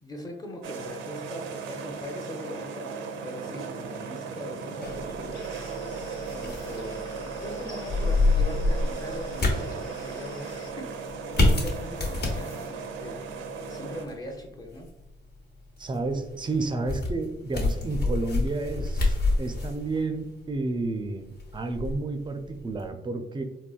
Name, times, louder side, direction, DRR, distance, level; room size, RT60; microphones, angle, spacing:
voice 1, 0.0-2.9 3.2-5.3 6.3-13.4 13.7-14.9, left 1 dB, 20° left, 2 dB, 0.6 m, -40 dB
sound 1, 0.6-14.1, right 5 dB, 85° right, 0.5 m, -37 dB
sound 2, 4.8-22.9, left 2 dB, 55° left, 1.0 m, -29 dB
sound 3, 5.3-10.7, left 3 dB, 75° left, 0.6 m, -49 dB
voice 2, 15.8-23.4, right 3 dB, 25° right, 7 dB, 0.4 m, -31 dB
3.7 x 2.2 x 2.4 m, 0.97 s
cardioid pair, 90°, 20 cm